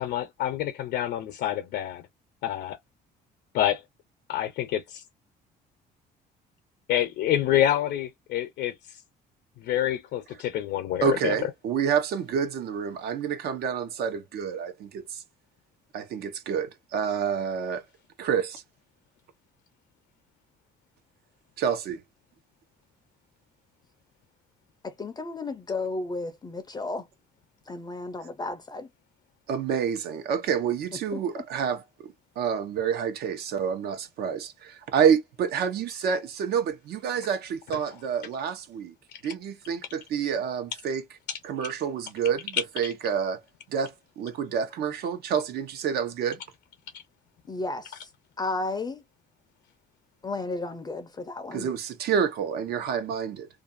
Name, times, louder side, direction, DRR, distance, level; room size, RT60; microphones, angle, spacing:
voice 1, 0.0-2.0 2.4-2.8 3.5-3.8 4.3-5.0 6.9-8.7 9.6-11.3, left 12 dB, 80° left, 0.7 m, -27 dB
voice 2, 11.0-15.2 15.9-17.8 18.2-18.6 21.6-22.0 29.5-38.9 39.2-41.0 41.4-43.4 43.7-46.4 51.5-53.5, right 7 dB, 70° right, 0.9 m, -28 dB
voice 3, 24.8-27.1 27.7-28.9 31.1-31.4 47.5-48.1 48.4-49.0 50.2-51.7, left 3 dB, 25° left, 0.5 m, -33 dB
2.6 x 2.3 x 2.5 m
cardioid pair, 110°, 17 cm